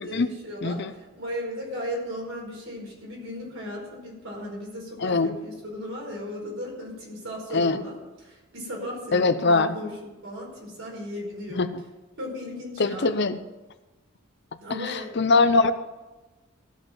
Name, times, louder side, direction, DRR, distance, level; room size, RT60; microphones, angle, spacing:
voice 1, 0.0-8.0 8.2-11.7 12.2-13.1 14.6-15.1, equal, 70° right, -3 dB, 4.8 m, -36 dB
voice 2, 5.0-5.4 7.5-7.8 9.1-9.8 11.5-11.8 12.8-13.4 14.8-15.7, left 3 dB, 55° left, 12 dB, 0.6 m, -22 dB
15.5 x 5.6 x 7.2 m, 1.1 s
head